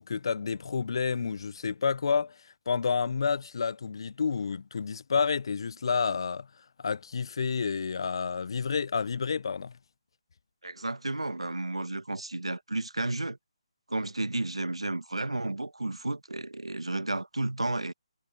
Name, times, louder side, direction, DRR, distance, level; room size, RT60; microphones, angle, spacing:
voice 1, 0.0-6.5 6.8-9.7, left 5 dB, 55° left, 0.5 m, -30 dB
voice 2, 10.6-13.4 13.9-17.9, right 2 dB, 90° right, 1.4 m, -32 dB
figure-of-eight pair, 150°, 3 cm